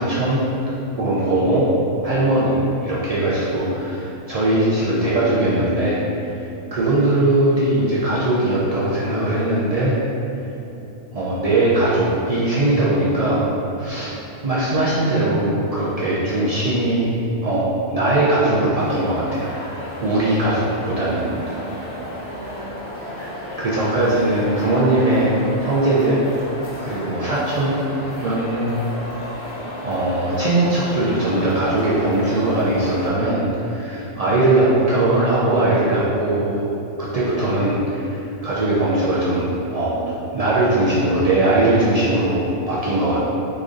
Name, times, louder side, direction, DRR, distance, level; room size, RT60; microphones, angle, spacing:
voice 1, 0.0-1.7 2.0-6.3 6.7-10.0 11.1-13.4 13.8-14.1 14.4-19.5 20.0-21.5 23.1-23.3 23.6-25.3 25.6-26.2 26.8-27.8 28.2-28.8 29.8-40.0 40.3-43.2, right 2 dB, 75° right, -9 dB, 0.3 m, -20 dB
sound 1, 18.8-33.1, left 1 dB, 50° left, 0.4 m, -33 dB
3.1 x 2.5 x 3.7 m, 2.9 s
omnidirectional pair, 1.3 m